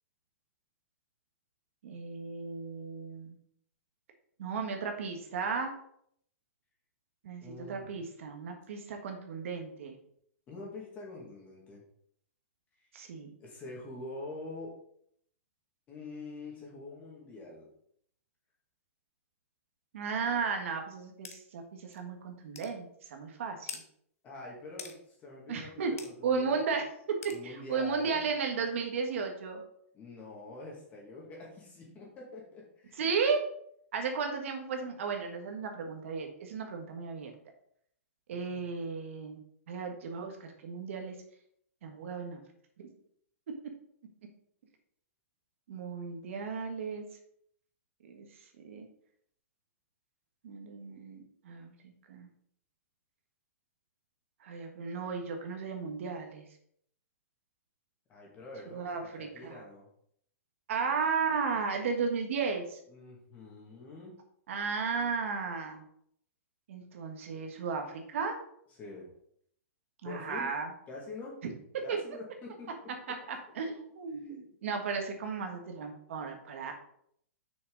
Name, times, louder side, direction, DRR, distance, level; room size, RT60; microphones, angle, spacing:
voice 1, 1.8-3.3 4.4-5.7 7.2-9.9 12.9-13.3 19.9-23.8 25.5-26.0 26.2-29.6 33.0-33.4 33.9-37.3 38.3-39.4 39.7-41.1 41.8-42.4 42.8-42.9 43.5-43.7 45.7-47.0 48.0-48.3 48.6-48.9 50.4-52.3 54.4-56.4 58.7-59.6 60.7-62.8 64.5-65.8 66.7-68.4 70.0-70.7 71.4-71.5 71.9-72.0 73.1-76.7, right 5 dB, 60° right, 4 dB, 1.5 m, -34 dB
voice 2, 7.4-8.0 10.5-11.8 13.4-14.8 15.9-17.7 24.2-25.7 26.0-26.6 27.3-28.2 29.9-33.1 38.3-38.8 58.1-59.9 62.9-64.1 68.8-69.1 70.0-70.5 70.9-71.4 71.8-72.9 74.2-74.4, left 2 dB, 20° left, -2 dB, 2.2 m, -45 dB
sound 1, 21.2-21.4 21.9-22.0 22.5-22.7 23.7-23.8 24.8-25.0 26.0-26.1 27.2-27.4, left 6 dB, 75° left, 1.1 m, -42 dB
6.3 x 6.0 x 4.0 m, 0.68 s
hypercardioid pair, 160°, 8 cm